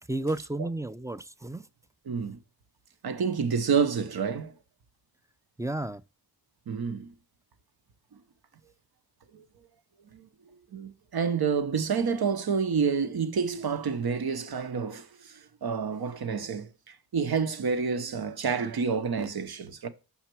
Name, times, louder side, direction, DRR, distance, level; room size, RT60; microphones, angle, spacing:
voice 1, 0.1-1.7 5.6-6.0, right 2 dB, 10° right, 0.3 m, -32 dB
voice 2, 2.1-2.4 3.0-4.5 6.7-7.1 9.3-9.4 10.1-10.3 10.7-19.9, right 6 dB, 75° right, 0.9 m, -29 dB
5.7 x 5.7 x 4.5 m
cardioid pair, 60°, 37 cm